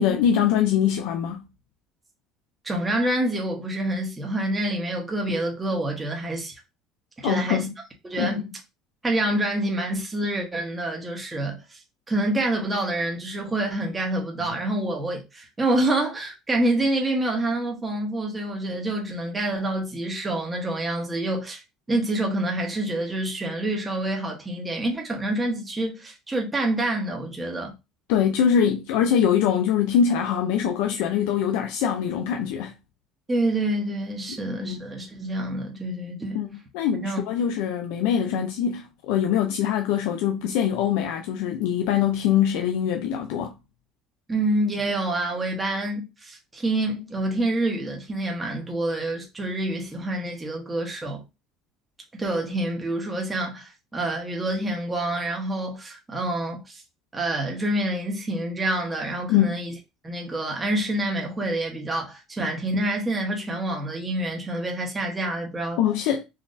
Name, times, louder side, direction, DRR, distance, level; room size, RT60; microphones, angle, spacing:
voice 1, 0.0-1.4 7.2-7.7 8.2-8.3 28.1-32.7 34.6-34.8 36.3-43.5 59.3-59.6 65.8-66.2, left 8 dB, 80° left, 0.4 m, -23 dB
voice 2, 2.6-6.6 7.2-7.7 8.0-8.5 9.0-11.8 12.1-21.6 21.9-27.7 33.3-36.4 37.0-37.2 38.3-38.4 44.3-51.2 52.2-56.8 57.1-59.7 60.0-65.8, right 1 dB, 15° right, 0.9 m, -27 dB
3.9 x 2.5 x 2.5 m
supercardioid pair, 120°, 0 cm